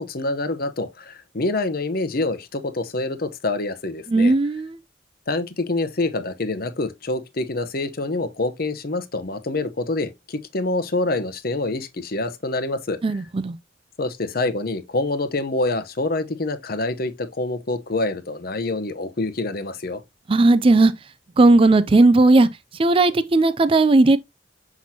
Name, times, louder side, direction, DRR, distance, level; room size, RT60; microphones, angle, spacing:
voice 1, 0.0-4.3 5.3-13.0 14.0-20.0, left 2 dB, 55° left, 0.9 m, -26 dB
voice 2, 4.1-4.8 13.0-13.6 20.3-20.9 21.4-24.2, right 2 dB, 30° right, 0.4 m, -16 dB
6.0 x 5.9 x 2.8 m
head